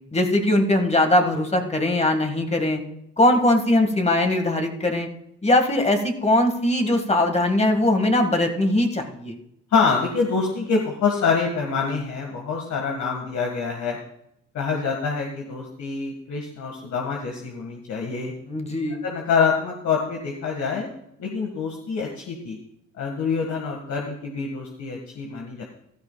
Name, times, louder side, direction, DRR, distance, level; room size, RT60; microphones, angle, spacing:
voice 1, 0.1-2.8 3.2-5.1 5.4-9.4 18.4-19.1, left 1 dB, 20° left, 4 dB, 1.8 m, -20 dB
voice 2, 9.7-14.0 14.5-18.3 19.0-20.9 21.2-22.6 23.0-25.6, left 5 dB, 70° left, 0 dB, 1.7 m, -26 dB
15.5 x 12.5 x 2.3 m, 0.77 s
cardioid pair, 90°, 30 cm